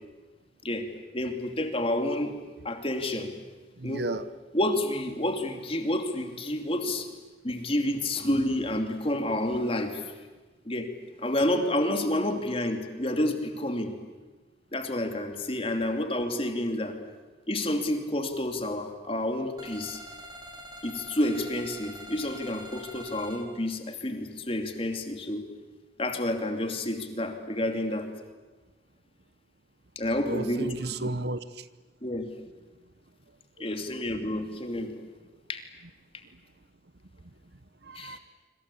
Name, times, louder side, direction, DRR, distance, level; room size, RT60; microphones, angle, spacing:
voice 1, 1.1-2.3 2.6-3.3 3.8-4.0 4.5-7.1 7.4-10.0 10.7-10.9 11.2-13.9 14.7-17.0 17.5-20.0 20.8-25.4 26.0-28.1 30.0-30.8 32.0-32.3 33.6-35.0 35.5-35.6 37.9-38.2, left 1 dB, 30° left, 6 dB, 2.7 m, -29 dB
voice 2, 3.8-4.3 30.3-31.7 33.6-33.7 37.8-38.2, right 2 dB, 60° right, 14 dB, 1.0 m, -33 dB
sound 1, 19.6-23.4, equal, 20° right, 3.9 m, -45 dB
26.0 x 25.5 x 8.5 m, 1.3 s
head